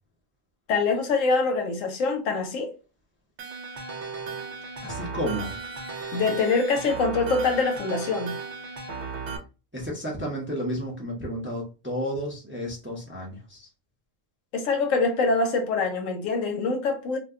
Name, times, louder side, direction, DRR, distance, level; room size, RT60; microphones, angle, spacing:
voice 1, 0.7-2.7 6.1-8.4 14.5-17.2, left 4 dB, 80° left, 1.1 m, -24 dB
sound 1, 3.4-9.4, right 4 dB, 65° right, 0.9 m, -35 dB
voice 2, 4.8-5.5 9.7-13.7, equal, 10° right, 0.6 m, -32 dB
2.6 x 2.2 x 3.6 m
omnidirectional pair, 1.3 m